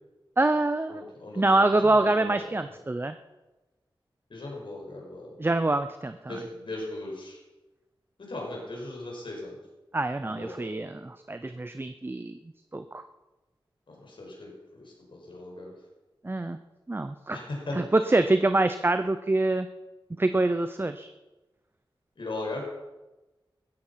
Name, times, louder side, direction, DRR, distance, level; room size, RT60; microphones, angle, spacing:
voice 1, 0.4-1.0 1.3-3.2 5.4-6.4 9.9-12.4 12.7-13.0 16.2-16.6 16.9-17.4 17.7-19.7 20.2-21.1, right 2 dB, 25° right, 9 dB, 0.6 m, -25 dB
voice 2, 0.9-2.4 4.3-5.3 6.3-7.4 8.2-9.6 10.2-10.7 14.0-14.8 15.1-15.7 17.3-17.8 22.2-22.6, left 2 dB, 65° left, -1 dB, 5.6 m, -38 dB
15.5 x 13.5 x 5.7 m, 1.1 s
wide cardioid pair, 95°, 9 cm